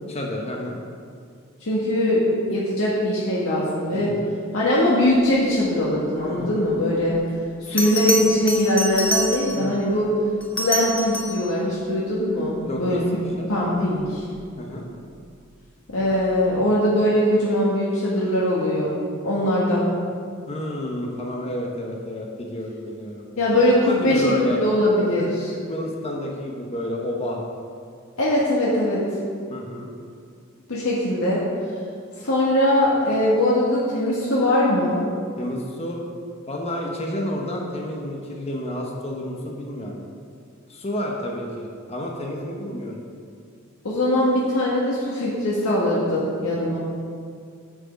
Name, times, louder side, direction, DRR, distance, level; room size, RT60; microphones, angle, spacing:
voice 1, 0.1-0.8 3.9-4.2 6.2-6.5 9.5-9.8 12.6-13.5 14.6-14.9 20.5-23.2 23.9-24.6 25.2-25.3 25.5-27.4 29.5-29.9 35.4-36.0 36.5-40.0 40.7-43.0, left 1 dB, 30° left, 0 dB, 1.0 m, -30 dB
voice 2, 1.6-2.2 2.5-4.1 4.5-7.2 7.6-10.1 10.6-13.2 13.5-14.2 15.9-19.0 19.2-19.9 23.4-25.5 28.2-29.0 30.7-31.4 32.2-35.0 43.8-46.8, left 1 dB, 90° left, -6 dB, 1.6 m, -21 dB
Bell, 7.8-9.7 10.4-11.5 14.2-14.4, equal, 5° left, 1.0 m, -26 dB
8.8 x 7.6 x 5.2 m, 2.3 s
head